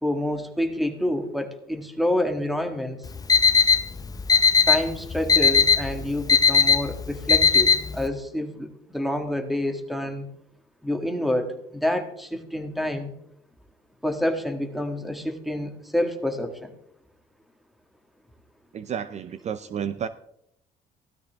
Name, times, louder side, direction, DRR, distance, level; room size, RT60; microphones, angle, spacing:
voice 1, 0.0-3.0 4.7-10.3 10.8-13.1 14.0-16.7, left 1 dB, ahead, 6 dB, 1.7 m, -28 dB
Alarm, 3.1-8.1, left 6 dB, 20° left, 0.7 m, -19 dB
voice 2, 18.7-20.1, right 8 dB, 40° right, 13 dB, 0.5 m, -31 dB
15.5 x 13.0 x 3.5 m, 0.76 s
cardioid pair, 110°, 17 cm